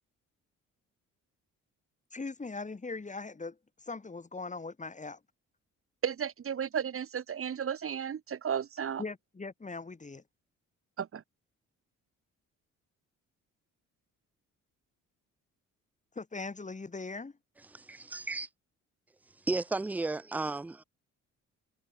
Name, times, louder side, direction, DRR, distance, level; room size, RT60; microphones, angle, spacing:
voice 1, 2.1-5.2 9.0-10.2 16.1-17.3, left 3 dB, 25° left, 4.6 m, -40 dB
voice 2, 6.0-9.0 11.0-11.2, right 8 dB, 45° right, 1.8 m, -34 dB
voice 3, 17.7-18.5 19.5-20.8, right 3 dB, 5° right, 0.4 m, -34 dB
cardioid pair, 90°, 30 cm